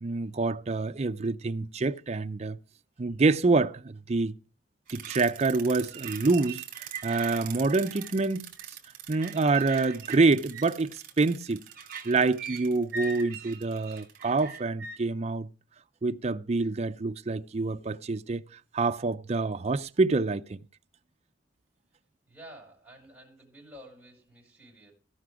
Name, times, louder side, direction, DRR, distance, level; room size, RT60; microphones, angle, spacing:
voice 1, 0.0-2.6 3.0-4.4 4.9-8.5 9.1-11.6 12.0-15.5 16.0-18.4 18.7-20.6, right 3 dB, 35° right, 0.5 m, -26 dB
sound 1, 4.9-15.0, right 6 dB, 55° right, 2.6 m, -41 dB
voice 2, 22.3-24.9, equal, 5° right, 5.2 m, -51 dB
16.5 x 5.8 x 4.9 m
head